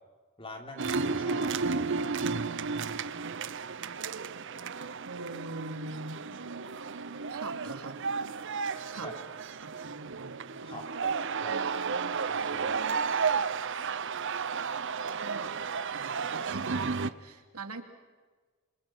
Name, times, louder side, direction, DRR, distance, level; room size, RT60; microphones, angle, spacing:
voice 1, 0.4-1.7 8.7-9.1 10.6-11.5 12.1-12.8, left 1 dB, 25° left, 3 dB, 3.6 m, -45 dB
sound 1, 0.8-17.1, right 5 dB, 55° right, 0.8 m, -33 dB
sound 2, 2.4-13.2, right 3 dB, 70° right, 1.5 m, -45 dB
voice 2, 5.0-6.2 7.3-8.0 8.9-9.1 9.6-10.8 11.5-12.2 15.2-15.6 15.9-17.8, right 2 dB, 90° right, 5 dB, 2.9 m, -42 dB
27.5 x 26.5 x 6.2 m, 1.4 s
head